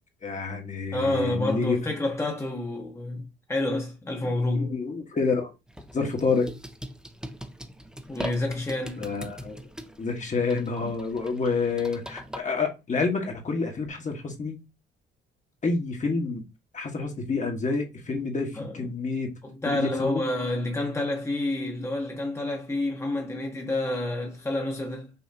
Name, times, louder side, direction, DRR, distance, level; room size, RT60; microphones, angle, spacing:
voice 1, 0.2-1.8 4.5-5.5 5.9-6.6 9.0-9.6 10.0-14.6 15.6-16.4 16.7-19.3 19.6-20.2, left 4 dB, 40° left, 1.4 m, -28 dB
voice 2, 0.9-4.7 8.1-9.1 10.8-10.9 18.5-18.8 19.4-25.1, left 2 dB, 15° left, 1.1 m, -29 dB
sound 1, 5.7-12.4, equal, 5° right, 0.7 m, -41 dB
5.6 x 2.8 x 2.8 m
cardioid pair, 90°, 20 cm